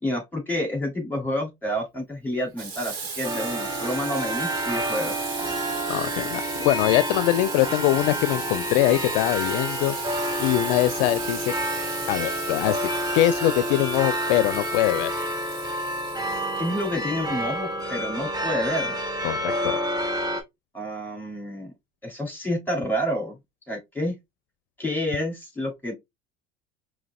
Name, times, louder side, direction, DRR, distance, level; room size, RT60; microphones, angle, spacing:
voice 1, 0.0-5.1 16.6-19.0 20.7-21.7 22.0-23.3 23.7-24.1 24.8-25.9, left 1 dB, 5° left, 2.9 m, -29 dB
Water tap faucet / Sink (filling or washing), 2.6-17.3, right 4 dB, 70° right, 2.1 m, -36 dB
sound 1, 3.2-20.4, right 1 dB, 15° right, 1.5 m, -29 dB
voice 2, 5.9-10.0 10.4-11.5 12.1-12.9 13.1-15.1 19.2-19.8, left 15 dB, 65° left, 0.4 m, -23 dB
5.0 x 3.1 x 2.3 m
hypercardioid pair, 70°, 30 cm